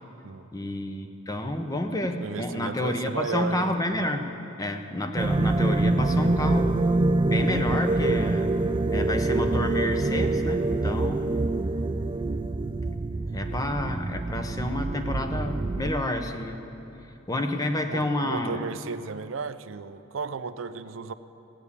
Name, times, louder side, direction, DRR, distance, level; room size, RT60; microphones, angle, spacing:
voice 1, 0.5-4.3 4.6-6.8 7.3-8.5 8.9-11.5 13.3-16.6 17.3-18.7, left 1 dB, 20° left, 6 dB, 0.8 m, -29 dB
voice 2, 2.2-3.7 17.9-21.1, right 4 dB, 85° right, 12 dB, 0.5 m, -34 dB
sound 1, 5.2-15.9, right 2 dB, 25° right, 0.3 m, -25 dB
16.0 x 8.5 x 8.4 m, 3.0 s
head